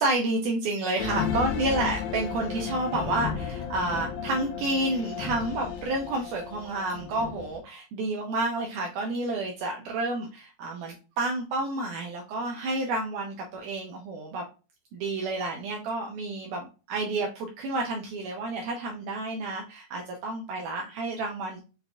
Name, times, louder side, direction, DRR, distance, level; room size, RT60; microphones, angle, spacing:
voice 1, 0.0-14.5 14.9-21.6, right 2 dB, 85° right, 1 dB, 1.8 m, -30 dB
sound 1, 1.0-7.6, left 7 dB, 80° left, 2.2 m, -34 dB
6.5 x 2.4 x 2.3 m, 0.33 s
omnidirectional pair, 4.2 m